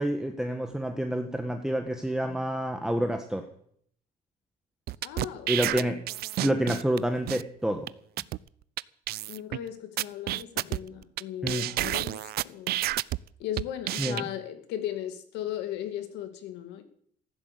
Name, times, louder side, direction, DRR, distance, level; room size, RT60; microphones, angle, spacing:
voice 1, 0.0-3.5 5.5-6.0 6.4-7.9 11.4-11.7 14.0-14.2, right 1 dB, 5° right, 1.5 m, -28 dB
sound 1, 4.9-7.0 7.3-7.4 7.9-8.0 8.2-8.4 8.8-8.9 9.1-9.6 10.0-11.2 11.5-13.2 13.6-14.2, right 16 dB, 70° right, 0.5 m, -30 dB
voice 2, 5.0-6.0 9.3-12.8 13.4-16.8, left 11 dB, 90° left, 2.3 m, -37 dB
15.0 x 11.0 x 8.3 m
cardioid pair, 110°, 17 cm